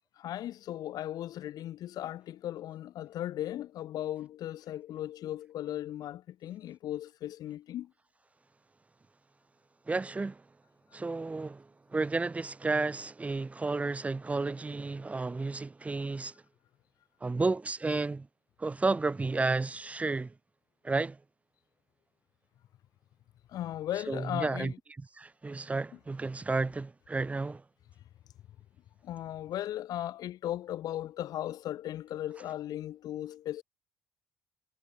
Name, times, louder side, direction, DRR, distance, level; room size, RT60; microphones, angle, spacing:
voice 1, 0.2-7.9 23.5-24.7 29.0-33.6, left 12 dB, 60° left, 2.1 m, -37 dB
voice 2, 9.9-10.4 10.9-16.3 17.2-18.3 18.6-20.3 20.8-21.2 24.1-27.6, right 3 dB, 20° right, 0.4 m, -32 dB
hypercardioid pair, 45°, 7 cm